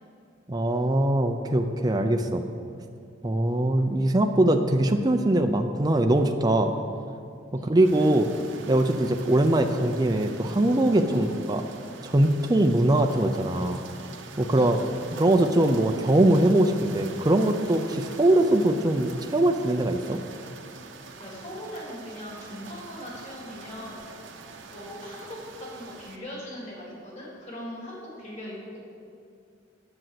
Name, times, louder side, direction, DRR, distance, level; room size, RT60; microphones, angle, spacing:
voice 1, 0.5-2.4 3.2-6.7 7.5-8.3 8.7-11.6 12.0-13.8 14.4-14.8 15.2-20.2, right 1 dB, 20° right, 5 dB, 0.5 m, -22 dB
sound 1, 7.8-26.2, right 4 dB, 75° right, 1.0 m, -44 dB
voice 2, 21.2-24.0 24.7-28.8, equal, 35° left, -5 dB, 3.4 m, -40 dB
10.0 x 7.8 x 7.6 m, 2.4 s
head